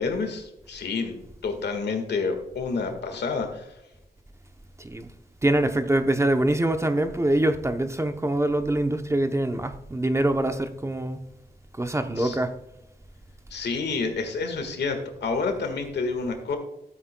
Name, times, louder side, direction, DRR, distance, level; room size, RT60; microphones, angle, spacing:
voice 1, 0.0-3.7 12.2-12.4 13.5-16.6, left 4 dB, 85° left, 1.7 m, -29 dB
voice 2, 5.4-11.2 11.8-12.5, right 1 dB, 15° right, 0.7 m, -24 dB
13.0 x 8.4 x 2.2 m
cardioid pair, 85°, 17 cm